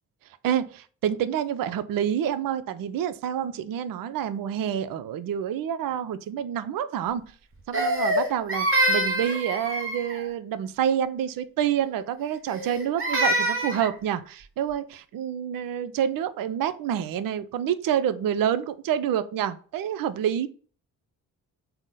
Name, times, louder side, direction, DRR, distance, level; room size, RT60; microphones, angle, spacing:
voice 1, 0.4-7.2 7.7-20.5, right 9 dB, 50° right, 0.5 m, -28 dB
Crying sobbing, 7.7-10.3 12.5-13.9, right 1 dB, 25° right, 1.2 m, -25 dB
3.7 x 2.1 x 3.8 m
hypercardioid pair, 45°, 46 cm